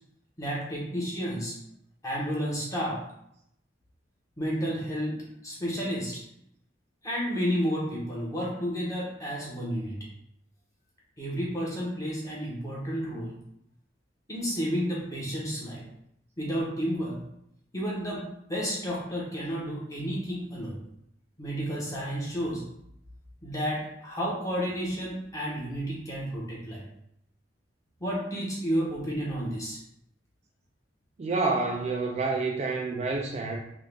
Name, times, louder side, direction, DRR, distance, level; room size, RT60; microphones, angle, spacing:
voice 1, 0.4-1.5 2.0-3.0 4.4-6.2 7.0-10.0 11.2-13.4 14.3-15.8 16.4-17.2 17.7-18.2 18.5-20.8 21.4-22.6 23.4-26.8 28.0-29.8, equal, 20° left, -5 dB, 1.0 m, -31 dB
voice 2, 31.2-33.6, right 3 dB, 35° right, 1 dB, 0.3 m, -28 dB
3.7 x 2.4 x 3.4 m, 0.75 s
head